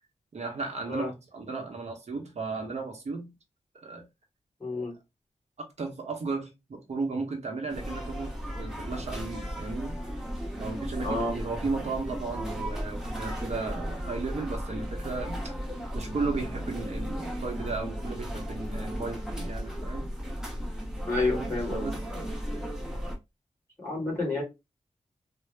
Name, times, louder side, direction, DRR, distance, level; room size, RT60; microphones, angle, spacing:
voice 1, 0.3-3.3 3.8-4.0 5.8-10.0 10.6-15.4 15.9-20.1 21.4-22.0, right 3 dB, 60° right, 0.9 m, -35 dB
voice 2, 4.6-4.9 11.0-11.3 21.1-21.8 23.8-24.4, left 2 dB, 20° left, 2.0 m, -29 dB
sound 1, 7.7-23.1, equal, 5° right, 0.8 m, -35 dB
3.7 x 2.1 x 3.2 m
wide cardioid pair, 175°, 13 cm